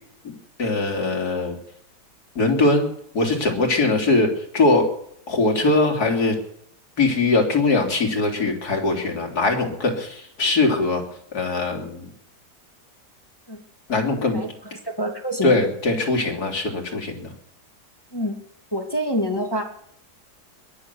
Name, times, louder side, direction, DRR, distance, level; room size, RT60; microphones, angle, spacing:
voice 1, 0.6-1.6 2.4-2.9 3.1-4.9 5.3-6.4 7.0-11.0 11.3-12.1 13.9-14.4 15.4-17.2, left 2 dB, 70° left, 2 dB, 3.6 m, -21 dB
voice 2, 14.3-15.5 18.1-18.4 18.7-19.6, equal, 15° left, 3 dB, 1.8 m, -26 dB
21.5 x 9.6 x 6.9 m, 0.72 s
omnidirectional pair, 1.7 m